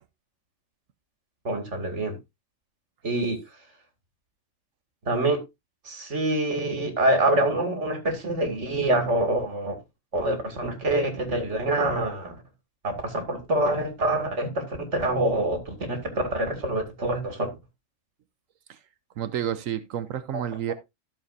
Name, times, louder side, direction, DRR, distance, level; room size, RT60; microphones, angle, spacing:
voice 1, 1.4-2.1 3.0-3.4 5.0-5.4 5.8-9.8 10.1-12.3 12.8-17.5, right 1 dB, 60° right, 2.7 m, -26 dB
voice 2, 19.2-20.7, right 10 dB, 80° right, 1.1 m, -30 dB
14.0 x 7.0 x 2.6 m
omnidirectional pair, 1.4 m